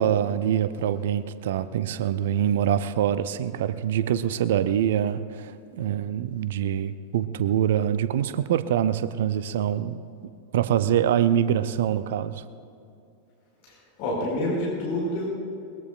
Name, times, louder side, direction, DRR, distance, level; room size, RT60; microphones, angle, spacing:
voice 1, 0.0-10.0 10.5-12.4, right 10 dB, 55° right, 14 dB, 0.6 m, -24 dB
voice 2, 13.6-15.2, left 1 dB, 45° left, -4 dB, 4.7 m, -28 dB
22.0 x 21.5 x 2.5 m, 2.6 s
figure-of-eight pair, 90°, 0 cm